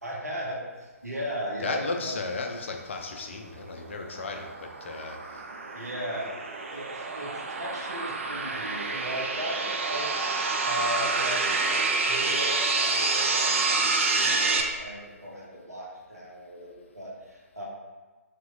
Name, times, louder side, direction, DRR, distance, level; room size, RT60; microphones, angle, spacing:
voice 1, 0.0-2.4 5.7-6.4 6.7-10.1 10.6-13.8 14.1-17.6, equal, 85° right, -4 dB, 1.1 m, -37 dB
voice 2, 1.6-5.4, left 3 dB, 50° left, 2 dB, 0.5 m, -35 dB
sound 1, 3.8-14.6, right 3 dB, 50° right, 0.4 m, -28 dB
2.9 x 2.7 x 3.6 m, 1.3 s
figure-of-eight pair, 135°, 8 cm